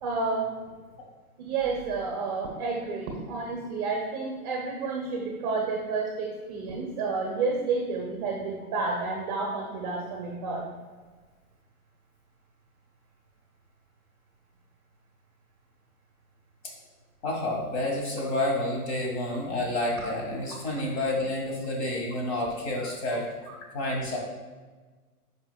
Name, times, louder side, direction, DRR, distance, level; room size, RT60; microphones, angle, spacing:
voice 1, 0.0-0.5 1.4-10.6 22.8-22.9, right 4 dB, 25° right, 0 dB, 0.7 m, -30 dB
voice 2, 17.2-24.2, left 1 dB, 45° left, -1 dB, 1.9 m, -29 dB
8.3 x 5.1 x 2.3 m, 1.4 s
hypercardioid pair, 145°, 46 cm